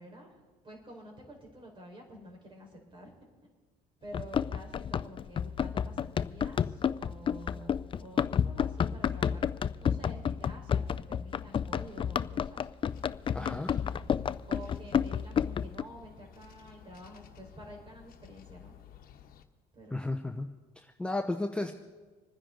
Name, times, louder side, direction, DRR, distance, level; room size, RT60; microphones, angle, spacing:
voice 1, 0.0-3.1 4.0-9.5 9.8-12.7 13.3-14.0 14.5-18.7 19.7-20.2, equal, 30° right, 1 dB, 4.7 m, -49 dB
Run, 4.1-15.8, left 8 dB, 30° left, 0.4 m, -31 dB
sound 1, 12.9-19.4, left 9 dB, 60° left, 1.2 m, -54 dB
voice 2, 13.3-13.7 19.9-20.5 20.8-21.7, left 2 dB, 5° left, 4 dB, 0.8 m, -33 dB
26.5 x 10.0 x 3.9 m, 1.3 s
cardioid pair, 110°, 17 cm